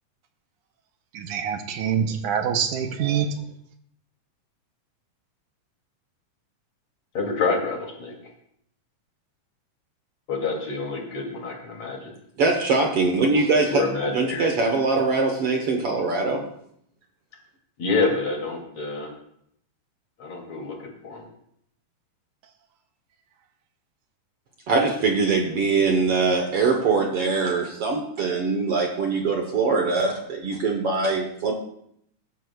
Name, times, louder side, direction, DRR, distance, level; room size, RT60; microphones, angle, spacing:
voice 1, 1.1-3.3, right 8 dB, 80° right, 6 dB, 2.3 m, -25 dB
voice 2, 7.1-8.1 10.3-12.1 13.7-14.5 17.8-19.1 20.2-21.2, left 3 dB, 55° left, -1 dB, 3.8 m, -27 dB
voice 3, 12.4-13.8 14.1-16.4 24.7-31.5, right 4 dB, 55° right, 2 dB, 1.9 m, -22 dB
22.0 x 11.0 x 2.4 m, 0.70 s
omnidirectional pair, 3.7 m